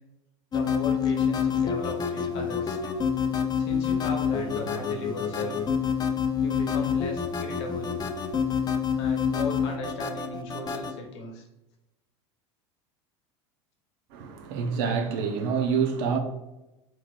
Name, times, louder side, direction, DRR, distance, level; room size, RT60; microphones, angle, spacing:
voice 1, 0.5-2.8 3.6-5.6 6.4-8.0 8.9-11.4, left 2 dB, 70° left, 1.2 m, -36 dB
sound 1, 0.5-10.9, left 7 dB, 25° left, 0.6 m, -27 dB
voice 2, 14.1-16.2, right 6 dB, 65° right, 0.9 m, -27 dB
4.4 x 4.0 x 2.5 m
hypercardioid pair, 90°, 15 cm